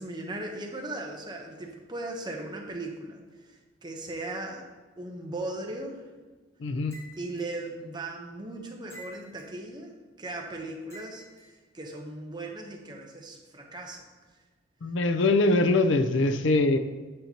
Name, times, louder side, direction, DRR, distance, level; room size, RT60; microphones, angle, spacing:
voice 1, 0.0-4.6 5.0-6.0 7.2-9.9 10.2-14.1, right 2 dB, 20° right, 1 dB, 0.9 m, -38 dB
voice 2, 6.6-7.0 14.8-16.8, left 2 dB, 65° left, 10 dB, 0.5 m, -23 dB
sound 1, 6.9-7.5 8.9-9.6 10.9-11.5, equal, 15° left, 1.2 m, -49 dB
8.5 x 6.9 x 2.9 m, 1.3 s
head